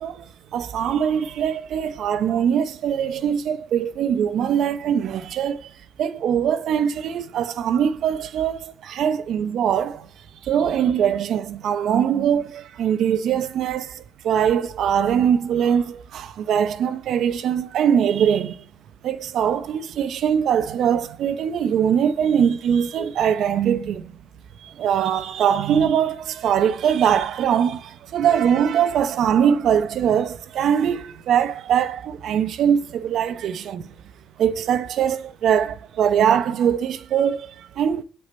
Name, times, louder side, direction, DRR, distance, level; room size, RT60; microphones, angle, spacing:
voice 1, 0.0-5.7 6.0-10.1 10.4-18.6 19.0-24.2 24.6-33.9 34.4-38.0, right 8 dB, 75° right, 0.7 m, -22 dB
8.3 x 7.8 x 4.3 m
cardioid pair, 90°, 0 cm